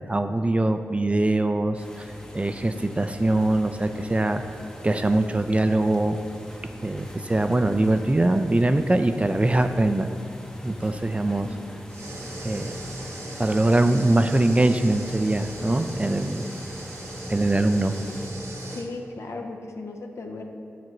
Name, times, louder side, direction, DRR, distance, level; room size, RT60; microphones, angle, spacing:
voice 1, 0.0-2.1 2.3-4.4 4.8-6.2 6.8-10.1 10.6-11.5 12.4-12.8 13.4-16.5 17.3-18.0, right 2 dB, 25° right, 8 dB, 0.4 m, -22 dB
sound 1, 1.7-18.3, equal, 15° left, 0.8 m, -43 dB
sound 2, 11.9-18.9, right 1 dB, 65° right, 0.9 m, -37 dB
voice 2, 18.7-20.4, left 3 dB, 65° left, 2 dB, 0.7 m, -36 dB
7.6 x 6.3 x 3.1 m, 2.6 s
cardioid pair, 45°, 5 cm